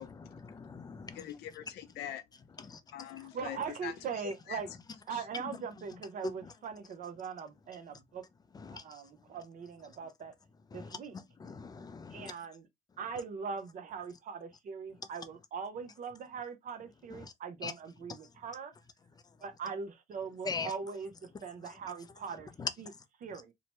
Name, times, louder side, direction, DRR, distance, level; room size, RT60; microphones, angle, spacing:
voice 1, 0.0-1.2 2.6-2.8 6.2-6.3 8.6-8.8 10.7-10.9 11.4-12.3 17.6-17.7 20.5-20.7 22.6-22.7, left 4 dB, 25° left, 0.4 m, -39 dB
voice 2, 1.1-2.2 2.9-3.9 4.5-4.6 5.1-5.2, left 11 dB, 75° left, 0.6 m, -43 dB
voice 3, 3.0-4.7 5.1-8.3 8.7-10.4 10.7-11.2 12.1-12.7 13.0-18.7 19.4-22.5 22.8-22.9 23.2-23.5, right 6 dB, 50° right, 0.7 m, -41 dB
2.8 x 2.1 x 2.9 m
cardioid pair, 110°, 17 cm